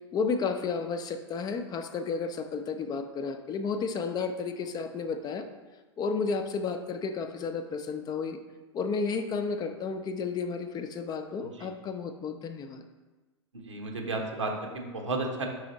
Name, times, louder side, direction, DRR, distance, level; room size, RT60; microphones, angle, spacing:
voice 1, 0.1-5.5 6.0-8.4 8.7-12.8, left 5 dB, 25° left, 7 dB, 0.5 m, -32 dB
voice 2, 13.7-15.5, right 3 dB, 90° right, 1 dB, 1.1 m, -32 dB
5.0 x 4.8 x 4.0 m, 1.2 s
hypercardioid pair, 100°, 15 cm